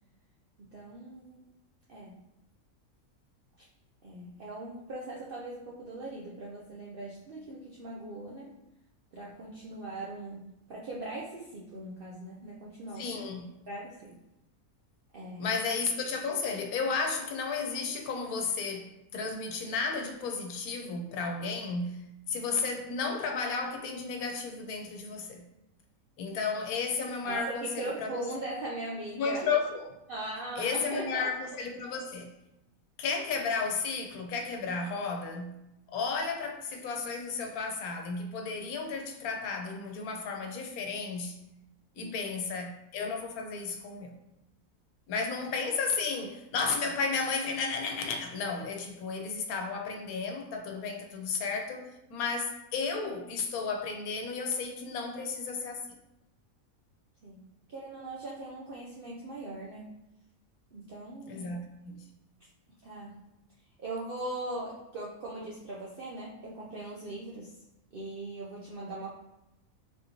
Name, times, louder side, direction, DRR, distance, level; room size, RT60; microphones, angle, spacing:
voice 1, 0.7-1.5 1.9-2.2 4.0-8.5 9.1-13.1 13.7-14.2 15.1-15.6 27.2-29.4 30.1-31.3 42.0-42.2 57.2-57.4 57.7-59.9 60.7-61.5 62.8-63.2 63.8-67.6 67.9-69.1, right 2 dB, 75° right, -4 dB, 0.5 m, -40 dB
voice 2, 13.0-13.5 15.4-22.0 22.3-25.4 26.2-28.2 29.1-29.9 30.6-32.3 33.0-35.6 35.9-41.4 42.0-44.1 45.1-55.8 61.3-62.0, left 4 dB, 85° left, 4 dB, 1.1 m, -33 dB
3.6 x 2.9 x 2.6 m, 0.90 s
omnidirectional pair, 1.5 m